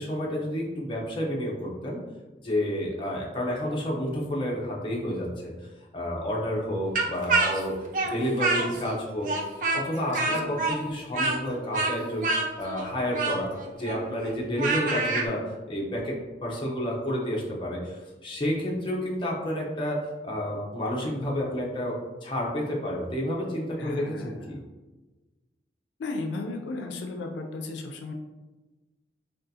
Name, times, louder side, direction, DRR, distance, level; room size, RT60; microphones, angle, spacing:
voice 1, 0.0-2.0 2.4-9.3 9.7-15.4 15.7-24.6, equal, 30° left, -3 dB, 0.6 m, -30 dB
Speech, 6.9-9.0 9.2-15.3, right 3 dB, 45° right, 0.4 m, -27 dB
voice 2, 10.1-10.6 23.8-24.5 26.0-28.1, left 3 dB, 85° left, 4 dB, 0.4 m, -35 dB
3.6 x 2.3 x 2.7 m, 1.2 s
head